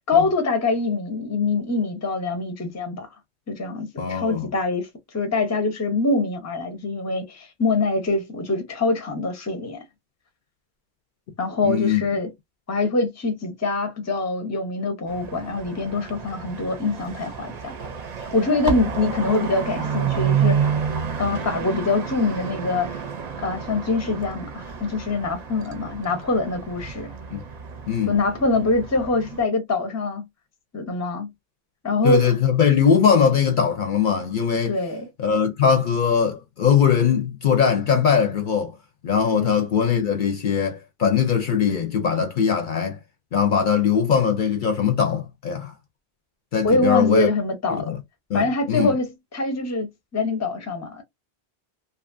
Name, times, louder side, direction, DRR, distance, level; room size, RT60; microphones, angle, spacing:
voice 1, 0.1-3.1 3.5-4.9 5.1-9.8 11.4-12.3 12.7-17.8 18.3-20.7 21.2-23.0 23.4-27.1 28.1-30.2 30.7-31.3 31.8-32.3 34.7-35.1 39.3-39.5 46.6-47.9 48.3-49.9 50.1-51.0, left 3 dB, 20° left, 0.6 m, -24 dB
voice 2, 4.0-4.5 11.6-12.0 27.3-27.4 27.9-28.2 32.0-34.8 35.2-38.8 39.0-43.0 43.3-45.7 46.5-47.3 47.7-48.0 48.3-48.9, left 7 dB, 60° left, 0.6 m, -21 dB
sound 1, 15.1-29.4, right 7 dB, 50° right, 0.6 m, -29 dB
2.7 x 2.4 x 2.4 m
omnidirectional pair, 1.0 m